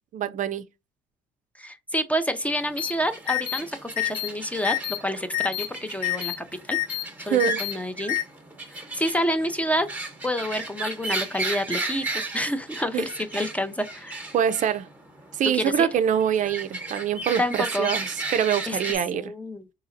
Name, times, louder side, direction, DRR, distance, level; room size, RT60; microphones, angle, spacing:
voice 1, 0.1-0.6 7.3-7.6 12.9-13.1 14.3-14.9 15.4-19.3, right 9 dB, 50° right, 0.4 m, -24 dB
voice 2, 1.6-6.8 7.3-8.2 8.7-9.9 10.2-14.3 15.5-15.9 17.4-17.9 18.7-19.6, equal, 10° left, 0.4 m, -28 dB
sound 1, 2.5-18.9, right 2 dB, 10° right, 1.0 m, -35 dB
sound 2, 2.8-2.9 3.3-3.6 4.0-4.3 4.6-5.0 5.3-5.7 6.0-6.3 6.7-7.0 7.4-7.7 8.1-8.2, left 17 dB, 55° left, 1.3 m, -27 dB
4.0 x 2.8 x 2.6 m
cardioid pair, 110°, 17 cm